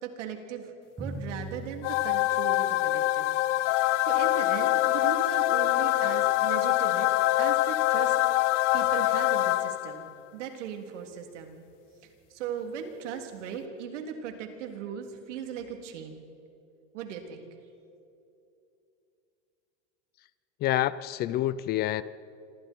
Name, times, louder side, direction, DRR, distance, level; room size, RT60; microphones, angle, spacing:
voice 1, 0.0-3.3 3.6-7.1 7.4-11.6 12.3-16.2 16.9-17.5, right 7 dB, 85° right, 4 dB, 3.5 m, -38 dB
Drum, 1.0-3.4, right 1 dB, 10° right, 1.7 m, -41 dB
sound 1, 1.8-10.1, left 16 dB, 80° left, 0.7 m, -25 dB
voice 2, 20.6-22.0, left 14 dB, 30° left, 17 dB, 0.4 m, -27 dB
29.0 x 26.5 x 4.6 m, 2.7 s
supercardioid pair, 150°, 35 cm